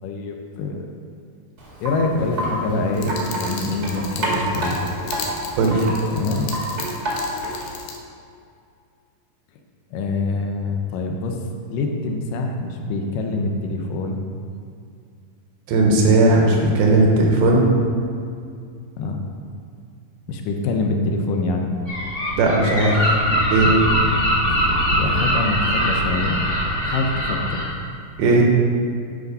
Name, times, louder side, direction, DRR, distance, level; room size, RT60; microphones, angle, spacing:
voice 1, 0.0-0.9 1.8-4.8 6.1-6.5 9.9-11.4 11.7-14.2 19.0-19.2 20.3-21.8 24.5-24.6 25.0-26.5 26.8-27.6, left 3 dB, 75° left, 2 dB, 2.1 m, -25 dB
Wind chime, 1.6-7.8, right 1 dB, 35° right, 1.5 m, -29 dB
sound 1, 2.9-8.0, left 5 dB, 90° left, 3.0 m, -36 dB
voice 2, 5.6-6.0 15.7-17.7 22.4-23.1 23.5-23.7 28.2-28.4, right 2 dB, 75° right, -1 dB, 3.0 m, -16 dB
Gull seagull, 21.9-27.6, equal, 30° left, 1.0 m, -22 dB
10.5 x 5.3 x 5.4 m, 2.3 s
omnidirectional pair, 4.5 m